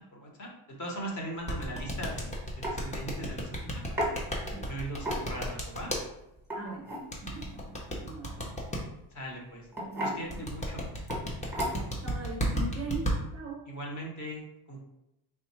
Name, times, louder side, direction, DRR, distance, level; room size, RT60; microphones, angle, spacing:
voice 1, 0.1-4.1 4.7-5.9 9.1-9.7 10.0-10.9 13.7-14.8, right 1 dB, 35° left, 0 dB, 1.0 m, -40 dB
sound 1, 1.5-6.0 7.1-8.8 10.3-13.1, equal, 15° left, 0.6 m, -32 dB
sound 2, 2.6-2.8 4.0-4.1 5.0-5.5 6.4-7.1 8.7-9.0 9.7-10.2 11.1-11.2 11.5-12.0, equal, 5° right, 1.0 m, -33 dB
voice 2, 6.6-8.5 9.8-10.5 11.7-13.6, right 3 dB, 30° right, -1 dB, 0.4 m, -41 dB
3.4 x 2.3 x 4.2 m, 0.85 s
cardioid pair, 155°, 50 cm